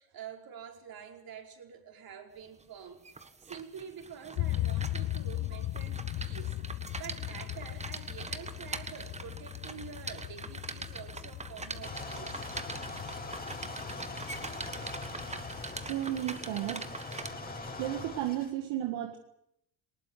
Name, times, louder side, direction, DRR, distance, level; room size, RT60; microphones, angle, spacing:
voice 1, 0.0-3.0 3.4-12.5, right 7 dB, 45° right, 4 dB, 5.2 m, -47 dB
sound 1, 2.6-17.3, right 3 dB, 15° right, 1.5 m, -43 dB
sound 2, 4.4-15.9, left 16 dB, 50° left, 0.8 m, -38 dB
sound 3, 11.8-18.5, left 3 dB, 20° left, 4.2 m, -42 dB
voice 2, 15.9-16.9 17.8-19.2, right 13 dB, 70° right, 7 dB, 1.8 m, -33 dB
20.0 x 18.5 x 9.6 m, 0.77 s
supercardioid pair, 105°, 47 cm